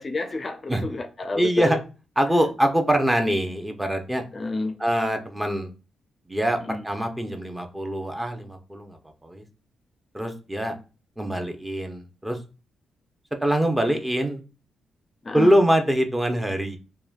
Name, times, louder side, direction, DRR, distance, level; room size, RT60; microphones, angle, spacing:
voice 1, 0.0-1.8 4.3-4.8 6.6-6.9 15.2-15.6, left 3 dB, 40° left, 0.4 m, -29 dB
voice 2, 1.4-1.8 2.2-4.2 4.8-5.7 6.3-9.4 10.1-10.8 11.2-12.4 13.4-14.4 15.3-16.8, equal, 15° right, 0.7 m, -24 dB
3.1 x 2.2 x 2.4 m
hypercardioid pair, 45°, 0 cm